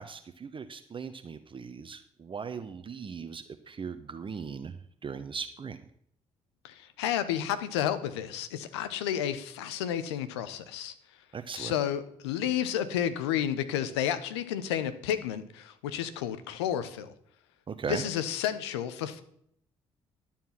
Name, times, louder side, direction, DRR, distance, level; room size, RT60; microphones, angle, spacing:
voice 1, 0.0-4.7 5.0-5.8 11.3-11.7 17.7-18.0, right 6 dB, 40° right, 9 dB, 1.0 m, -38 dB
voice 2, 6.6-10.9 11.5-17.1 17.9-19.2, left 10 dB, 85° left, 12 dB, 0.8 m, -31 dB
11.5 x 7.4 x 5.7 m, 0.67 s
hypercardioid pair, 50°, 14 cm